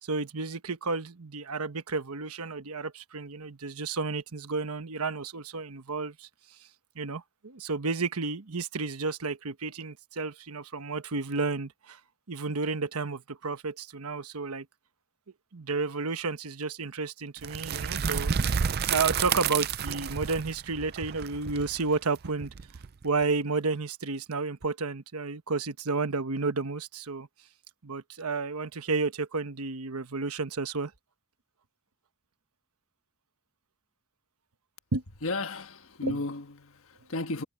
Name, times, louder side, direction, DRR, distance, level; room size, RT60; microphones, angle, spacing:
voice 1, 0.0-6.3 6.9-12.0 12.3-14.7 15.5-18.3 18.9-22.5 23.0-27.3 27.8-30.9 34.9-35.0 36.0-36.2, right 4 dB, 80° right, 1.2 m, -31 dB
sound 1, 17.4-23.2, right 7 dB, 45° right, 0.5 m, -30 dB
voice 2, 35.2-37.4, left 2 dB, 65° left, 1.5 m, -34 dB
head